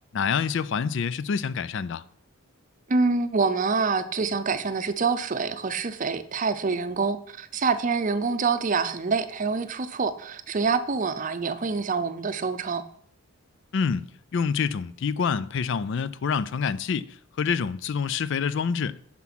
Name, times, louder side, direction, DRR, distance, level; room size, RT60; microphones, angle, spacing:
voice 1, 0.1-2.0 13.7-14.1 14.3-19.0, left 6 dB, 55° left, 0.4 m, -27 dB
voice 2, 2.9-12.8, right 4 dB, 35° right, 0.6 m, -26 dB
9.4 x 6.0 x 6.0 m
head